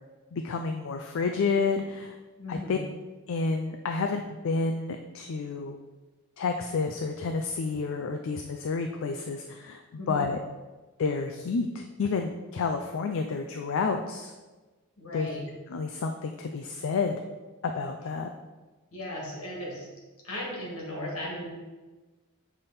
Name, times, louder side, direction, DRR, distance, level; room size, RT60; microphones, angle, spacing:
voice 1, 0.3-2.2 2.5-2.8 3.3-5.8 6.4-9.8 10.1-10.4 11.0-14.3 15.1-15.3 15.7-17.1 17.6-18.3, left 4 dB, 65° left, 5 dB, 0.4 m, -30 dB
voice 2, 2.4-2.9 10.0-10.3 15.0-15.4 18.9-19.9 20.2-21.5, left 1 dB, 80° left, -2 dB, 2.0 m, -36 dB
7.5 x 3.5 x 4.1 m, 1.2 s
head